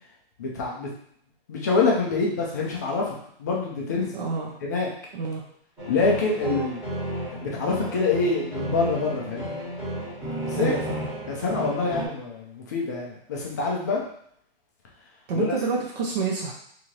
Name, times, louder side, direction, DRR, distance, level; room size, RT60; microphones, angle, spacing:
voice 1, 0.4-0.9 1.5-4.2 4.6-4.9 5.9-6.8 7.3-9.6 10.5-10.7 11.3-14.0 15.3-15.5, left 4 dB, 20° left, -2 dB, 0.4 m, -26 dB
voice 2, 4.1-4.6 5.1-5.4 10.5-11.1 15.3-16.5, right 4 dB, 45° right, -3 dB, 0.7 m, -28 dB
sound 1, 5.8-12.1, right 1 dB, 5° right, 1.1 m, -33 dB
3.7 x 2.8 x 3.1 m, 0.67 s
hypercardioid pair, 165°, 30 cm